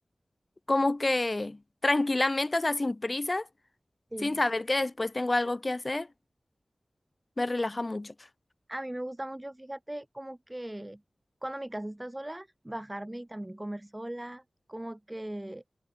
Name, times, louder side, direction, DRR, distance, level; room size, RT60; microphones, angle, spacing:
voice 1, 0.7-3.5 4.2-6.1 7.4-8.1, left 2 dB, 40° left, 0.3 m, -28 dB
voice 2, 4.1-4.4 8.7-11.0 11.4-14.4 14.7-15.6, right 1 dB, 20° right, 1.3 m, -38 dB
cardioid pair, 45°, 0 cm